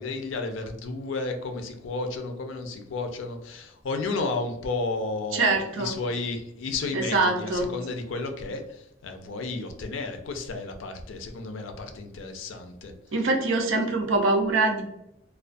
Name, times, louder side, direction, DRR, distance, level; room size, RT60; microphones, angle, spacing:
voice 1, 0.0-12.9, left 3 dB, 70° left, 5 dB, 0.4 m, -32 dB
voice 2, 5.3-5.9 6.9-7.7 13.1-14.8, right 3 dB, 80° right, 2 dB, 0.5 m, -24 dB
2.3 x 2.2 x 2.5 m, 0.81 s
head